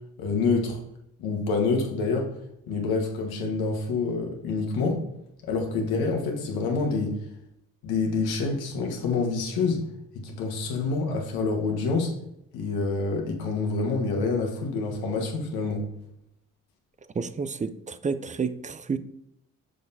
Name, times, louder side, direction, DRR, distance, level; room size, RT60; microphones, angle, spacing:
voice 1, 0.2-0.8 1.2-2.3 2.7-5.0 5.4-7.2 7.8-9.8 10.2-12.1 12.5-15.9, left 4 dB, 80° left, 1 dB, 1.4 m, -27 dB
voice 2, 17.2-19.0, right 5 dB, 20° right, 13 dB, 0.5 m, -30 dB
6.5 x 5.5 x 2.7 m, 0.81 s
supercardioid pair, 60°, 36 cm